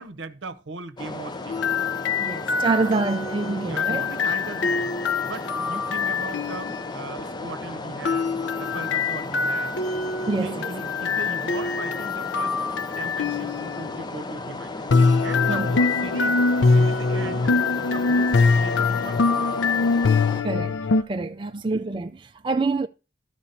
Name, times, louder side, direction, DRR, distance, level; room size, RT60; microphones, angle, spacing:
voice 1, 0.0-1.7 3.6-9.8 10.3-14.9 15.2-16.4 16.7-19.4 21.4-21.7, right 3 dB, 75° right, 0.8 m, -38 dB
sound 1, 1.0-20.4, left 2 dB, 25° left, 0.6 m, -35 dB
sound 2, 1.5-6.8 8.0-13.8 14.9-21.0, left 4 dB, 75° left, 0.5 m, -23 dB
voice 2, 2.2-4.0 10.3-10.7 15.5-15.7 20.4-20.8 21.1-22.9, right 3 dB, 25° right, 0.4 m, -26 dB
13.0 x 5.2 x 4.2 m
head